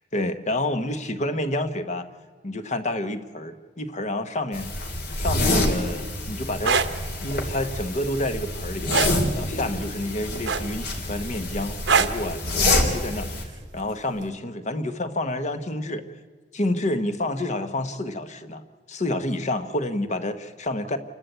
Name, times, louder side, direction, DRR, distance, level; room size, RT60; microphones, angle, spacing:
voice 1, 0.1-2.1 2.4-4.7 5.2-6.8 7.2-9.0 9.4-16.1 16.5-18.6 18.9-21.0, left 1 dB, 40° left, 9 dB, 1.2 m, -29 dB
sound 1, 4.5-13.4, left 2 dB, 65° left, 3.1 m, -27 dB
sound 2, 6.5-6.9 8.9-9.2 10.5-10.9 11.9-12.2 13.6-13.8, right 5 dB, 75° right, 1.1 m, -21 dB
28.5 x 12.5 x 8.1 m, 1.5 s
head